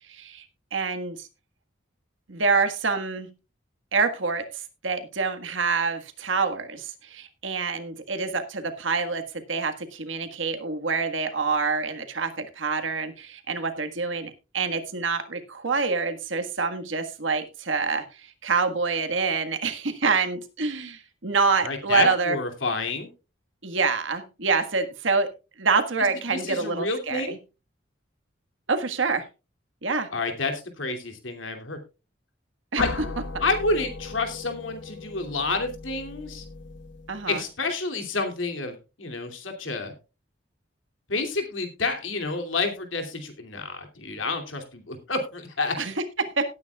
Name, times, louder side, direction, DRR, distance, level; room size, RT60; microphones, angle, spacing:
voice 1, 0.1-0.4 0.7-1.3 2.3-3.3 3.9-9.2 9.5-22.4 23.6-25.3 25.6-27.4 28.7-29.3 29.8-30.1 32.7-32.9 37.1-37.4 45.8-46.5, right 4 dB, 80° right, 7 dB, 1.6 m, -26 dB
voice 2, 21.6-23.1 26.3-27.4 30.1-31.8 32.8-32.9 33.4-36.4 37.3-39.9 41.1-45.7, left 3 dB, 85° left, 5 dB, 2.7 m, -29 dB
sound 1, 32.8-37.5, left 3 dB, 65° left, 0.8 m, -37 dB
18.0 x 9.5 x 2.4 m, 0.30 s
head